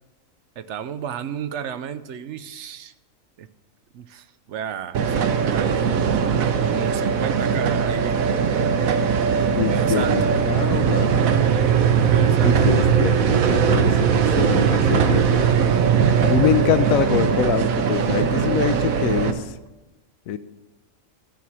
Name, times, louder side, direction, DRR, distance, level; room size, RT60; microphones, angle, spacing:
voice 1, 0.6-2.9 3.4-3.5 3.9-8.5 9.6-10.4 12.0-12.8, right 8 dB, 65° right, 12 dB, 0.8 m, -33 dB
sound 1, 4.9-19.3, right 7 dB, 85° right, 1.2 m, -20 dB
voice 2, 9.5-11.2 12.4-15.5 16.1-19.6 20.3-20.4, left 9 dB, 80° left, 13 dB, 1.0 m, -25 dB
12.5 x 4.7 x 7.2 m, 1.1 s
omnidirectional pair, 1.4 m